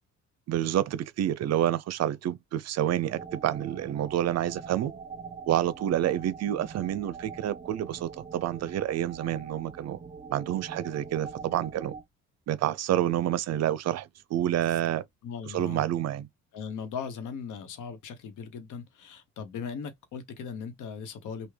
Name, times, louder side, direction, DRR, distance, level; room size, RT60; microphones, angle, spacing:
voice 1, 0.5-4.9 5.5-10.0 10.3-11.9 12.5-15.0 15.4-16.3, right 11 dB, 60° right, 0.5 m, -28 dB
sound 1, 3.1-12.0, right 5 dB, 25° right, 0.8 m, -43 dB
voice 2, 15.2-15.8 16.5-21.5, left 6 dB, 80° left, 1.0 m, -38 dB
3.5 x 2.2 x 3.2 m
cardioid pair, 90°, 30 cm